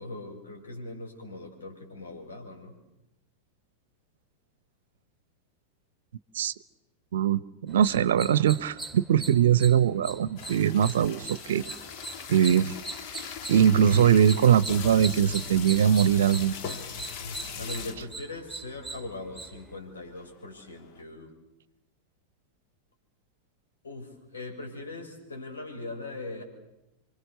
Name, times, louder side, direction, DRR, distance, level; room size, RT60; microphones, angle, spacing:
voice 1, 0.0-2.7 17.5-21.3 23.8-26.4, left 2 dB, 70° left, 6.6 m, -40 dB
voice 2, 7.1-11.6 12.3-12.8 13.5-16.5, right 9 dB, 60° right, 0.8 m, -22 dB
sound 1, 7.7-19.8, right 3 dB, ahead, 3.0 m, -41 dB
sound 2, 10.4-18.2 18.7-18.8 19.0-19.3 19.7-21.0, left 6 dB, 45° left, 1.8 m, -40 dB
28.5 x 25.0 x 6.8 m
figure-of-eight pair, 90°, 0 cm